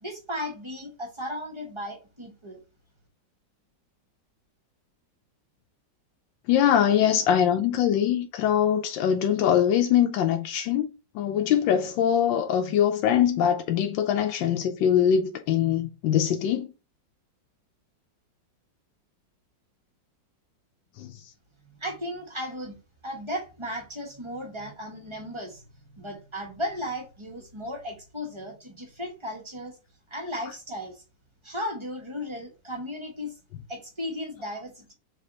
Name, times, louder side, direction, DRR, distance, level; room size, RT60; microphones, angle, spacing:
voice 1, 0.0-2.6 21.8-22.8 23.0-25.6 25.9-29.8 30.1-31.0 31.4-33.4 33.7-34.9, left 1 dB, 20° right, 0.8 m, -35 dB
voice 2, 6.5-10.9 11.1-16.7 21.0-21.1, left 9 dB, 85° left, 1.3 m, -23 dB
3.5 x 3.4 x 3.8 m
omnidirectional pair, 2.0 m